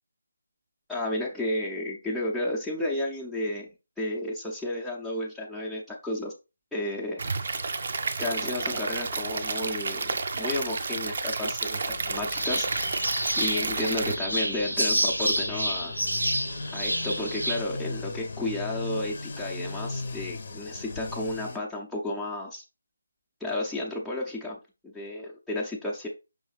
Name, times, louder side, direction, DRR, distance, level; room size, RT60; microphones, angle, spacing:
voice 1, 0.9-3.7 4.0-6.3 6.7-7.2 7.5-7.7 8.2-12.7 13.3-15.9 16.7-22.6 23.4-26.1, left 1 dB, ahead, -6 dB, 0.6 m, -32 dB
Stream / Liquid, 7.2-14.2, right 4 dB, 45° right, 0.6 m, -31 dB
sound 1, 11.9-21.6, left 3 dB, 45° left, 0.6 m, -38 dB
sound 2, 12.3-17.6, equal, 85° right, 1.1 m, -29 dB
5.4 x 3.0 x 3.2 m, 0.28 s
figure-of-eight pair, 150°, 0 cm